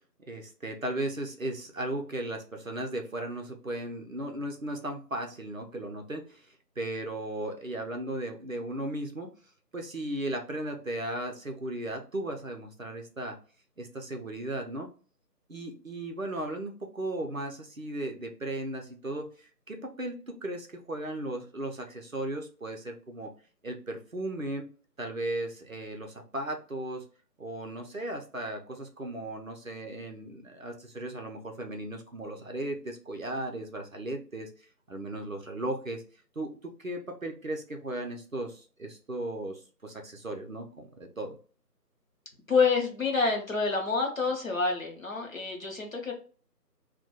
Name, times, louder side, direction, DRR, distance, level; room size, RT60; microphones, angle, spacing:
voice 1, 0.3-9.3 9.7-13.4 13.8-14.9 15.5-23.3 23.6-24.7 25.0-27.0 27.4-34.5 34.9-36.0 36.4-41.3, right 1 dB, 55° right, 3 dB, 0.5 m, -36 dB
voice 2, 42.5-46.1, left 4 dB, 55° left, 1 dB, 0.8 m, -27 dB
2.2 x 2.2 x 2.8 m, 0.39 s
figure-of-eight pair, 165°, 50 cm